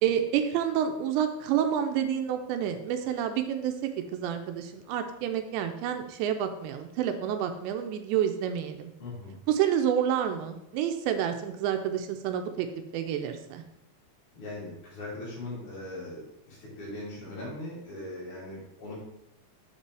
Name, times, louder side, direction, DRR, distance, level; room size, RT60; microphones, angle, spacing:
voice 1, 0.0-3.8 4.1-8.9 9.5-12.7 12.9-13.6, right 9 dB, 85° right, 6 dB, 2.7 m, -29 dB
voice 2, 9.0-9.4 14.3-19.0, left 2 dB, 35° left, -8 dB, 2.9 m, -40 dB
6.9 x 5.5 x 4.7 m, 0.81 s
omnidirectional pair, 5.4 m